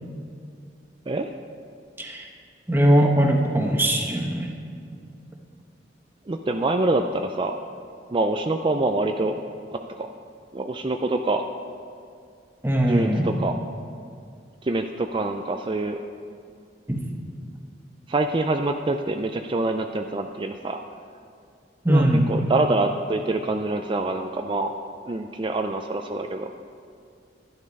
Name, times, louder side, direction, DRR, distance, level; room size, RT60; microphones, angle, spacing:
voice 1, 2.0-2.3 2.7-4.6 12.6-13.3 16.9-17.0 21.8-22.4, right 1 dB, 10° right, 1 dB, 1.3 m, -20 dB
voice 2, 6.3-7.6 8.1-9.4 9.7-10.1 10.5-11.4 12.9-13.5 14.6-16.0 18.1-20.8 21.9-24.7 25.1-26.5, right 2 dB, 25° right, 5 dB, 0.4 m, -25 dB
11.5 x 11.0 x 5.4 m, 2.3 s
head